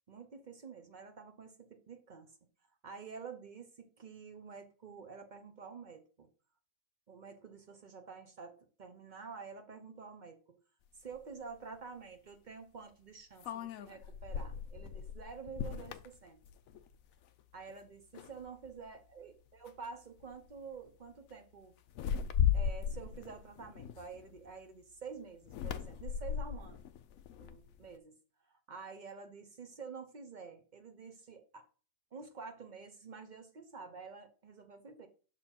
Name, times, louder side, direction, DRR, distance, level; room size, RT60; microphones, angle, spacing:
voice 1, 0.1-2.4 2.8-6.3 7.1-10.6 11.0-16.4 17.5-21.7 22.5-26.8 27.4-28.2 28.5-31.7 32.1-35.1, right 5 dB, 50° right, 5 dB, 0.5 m, -49 dB
sound 1, 11.1-11.2 13.4-17.1 17.4-17.7 18.1-18.8 19.7-19.9 20.2-20.5 21.9-24.5 25.4-27.9, left 9 dB, 70° left, 0.8 m, -37 dB
6.1 x 4.2 x 4.3 m, 0.37 s
omnidirectional pair, 1.9 m